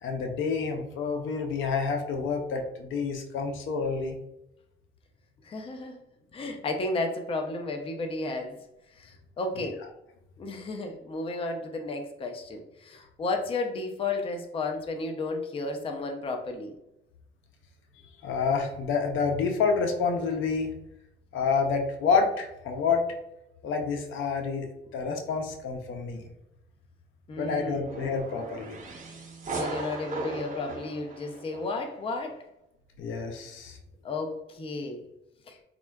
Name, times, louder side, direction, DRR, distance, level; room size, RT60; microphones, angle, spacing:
voice 1, 0.0-4.2 18.2-20.7 21.3-23.0 23.6-24.7 24.9-26.3 27.4-28.8 33.0-33.8, left 5 dB, 80° left, 4 dB, 0.5 m, -28 dB
voice 2, 5.4-6.0 6.3-8.6 8.9-9.8 10.4-16.8 24.8-25.0 27.3-27.9 29.5-32.4 34.0-35.1 35.5-35.6, left 3 dB, 30° left, 5 dB, 0.4 m, -33 dB
sound 1, 27.8-31.9, right 3 dB, 40° right, 0.8 m, -37 dB
3.5 x 2.2 x 2.2 m, 0.88 s
cardioid pair, 90°, 20 cm